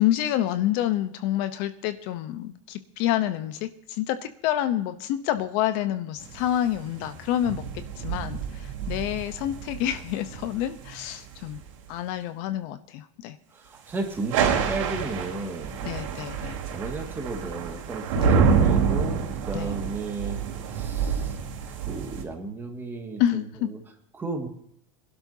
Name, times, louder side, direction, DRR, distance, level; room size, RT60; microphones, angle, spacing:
voice 1, 0.0-7.6 8.0-11.6 11.9-13.4 15.8-16.6 18.2-18.4 19.5-19.7 23.2-23.7, left 12 dB, 50° left, 11 dB, 0.8 m, -28 dB
sound 1, 6.2-11.7 14.1-22.2, right 6 dB, 85° right, 3.9 m, -27 dB
voice 2, 13.5-15.8 16.7-19.2 19.5-20.4 20.7-21.3 21.9-23.2 23.6-23.8 24.1-24.5, right 3 dB, 15° right, 3 dB, 2.0 m, -34 dB
22.5 x 12.0 x 2.8 m, 0.72 s
supercardioid pair, 165°, 16 cm